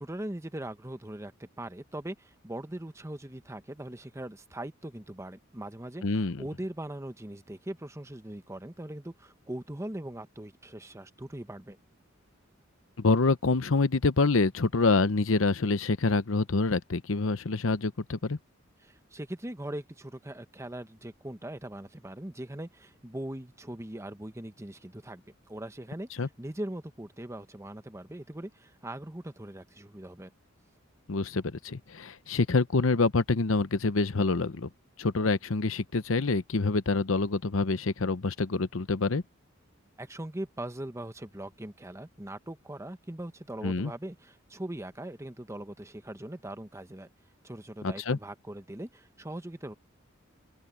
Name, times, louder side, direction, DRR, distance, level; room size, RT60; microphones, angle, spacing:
voice 1, 0.0-11.8 18.8-30.3 40.0-47.1 47.4-49.7, right 1 dB, 15° right, 1.1 m, -40 dB
voice 2, 6.0-6.4 13.0-18.4 26.2-26.3 31.1-34.7 35.0-39.2 43.6-43.9 47.8-48.2, left 3 dB, 80° left, 0.8 m, -26 dB
open air
head